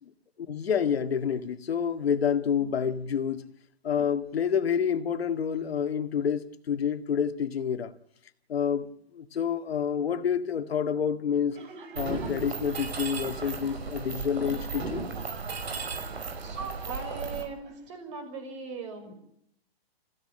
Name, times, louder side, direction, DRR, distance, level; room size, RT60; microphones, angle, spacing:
voice 1, 0.5-3.5 3.8-7.9 8.5-11.6 11.9-15.1, left 7 dB, 75° left, 1.9 m, -28 dB
Laughter, 11.5-17.8, right 4 dB, 55° right, 4.4 m, -47 dB
Mechanisms, 12.0-17.4, right 4 dB, 80° right, 5.5 m, -35 dB
voice 2, 16.4-19.1, right 5 dB, 30° right, 5.9 m, -39 dB
27.0 x 16.0 x 8.8 m
hypercardioid pair, 170°, 31 cm